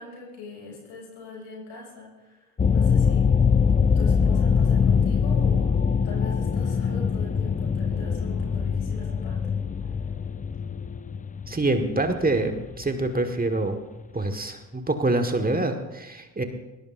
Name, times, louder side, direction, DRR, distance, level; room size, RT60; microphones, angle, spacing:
voice 1, 0.0-3.3 3.9-5.8 6.0-10.0, left 3 dB, 80° left, -2 dB, 6.5 m, -41 dB
sound 1, 2.6-13.6, left 6 dB, 20° left, 0.6 m, -23 dB
voice 2, 11.5-13.8 14.1-16.4, right 2 dB, 20° right, 5 dB, 1.7 m, -25 dB
22.5 x 17.0 x 2.7 m, 1.0 s
hypercardioid pair, 50°, 42 cm